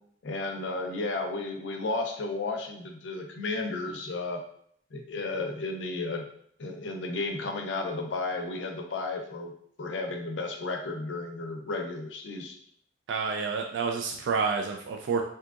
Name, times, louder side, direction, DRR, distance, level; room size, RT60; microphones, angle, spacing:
voice 1, 0.2-4.4 4.9-6.3 6.6-9.5 9.8-12.6, left 3 dB, 85° left, 3 dB, 0.5 m, -33 dB
voice 2, 13.1-15.2, right 5 dB, 75° right, 3 dB, 0.3 m, -29 dB
3.5 x 2.7 x 2.4 m, 0.65 s
head